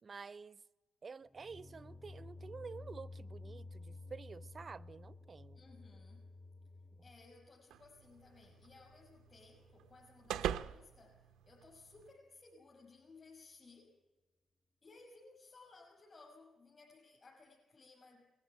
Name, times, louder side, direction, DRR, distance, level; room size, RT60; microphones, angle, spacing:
voice 1, 0.0-0.6 1.0-5.6, right 5 dB, 40° right, 0.6 m, -50 dB
sound 1, 1.3-10.2, left 2 dB, 20° left, 0.6 m, -54 dB
voice 2, 5.5-6.3 7.0-14.0 14.8-18.3, left 3 dB, 40° left, 6.6 m, -60 dB
sound 2, 7.7-12.1, right 10 dB, 85° right, 0.7 m, -44 dB
20.0 x 14.5 x 9.2 m
supercardioid pair, 65°, 0 cm